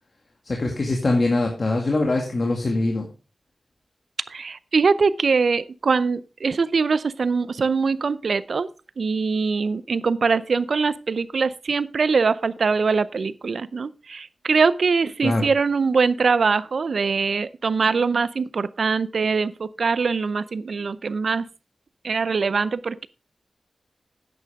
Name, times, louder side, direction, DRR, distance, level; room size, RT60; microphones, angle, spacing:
voice 1, 0.4-3.1 15.2-15.5, left 2 dB, 55° left, 2.1 m, -22 dB
voice 2, 4.3-8.7 9.0-21.5 22.0-23.1, right 4 dB, 75° right, 0.5 m, -22 dB
10.5 x 9.4 x 3.5 m
cardioid pair, 50°, 0 cm